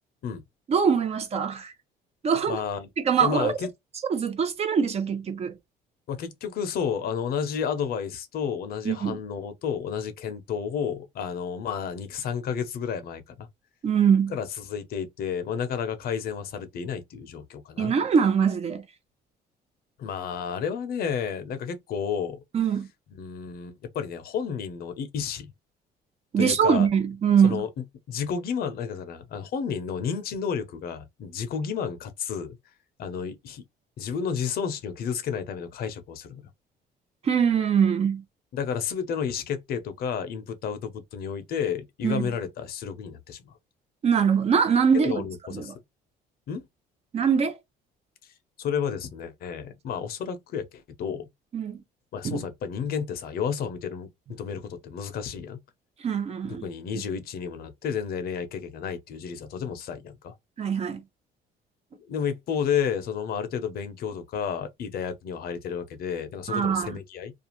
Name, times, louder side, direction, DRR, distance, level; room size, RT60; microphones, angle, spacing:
voice 1, 0.7-1.7 2.2-2.6 3.0-3.5 4.1-5.5 8.9-9.2 13.8-14.3 17.8-18.8 22.5-22.9 26.3-27.6 37.2-38.2 42.0-42.3 44.0-45.2 45.5-45.7 47.1-47.6 51.5-51.8 52.2-52.4 56.0-56.7 60.6-61.0 66.5-66.9, right 7 dB, 40° right, 0.6 m, -23 dB
voice 2, 2.5-2.9 3.2-3.7 6.1-13.5 14.3-17.9 20.0-22.4 23.1-25.5 26.4-26.9 27.4-27.7 28.1-32.6 33.0-33.6 34.0-36.4 38.5-43.6 44.9-45.7 46.5-46.6 48.2-48.3 48.6-51.3 52.1-55.6 56.6-60.3 61.9-67.3, left 7 dB, 65° left, 0.6 m, -31 dB
2.4 x 2.3 x 2.9 m
cardioid pair, 110°, 17 cm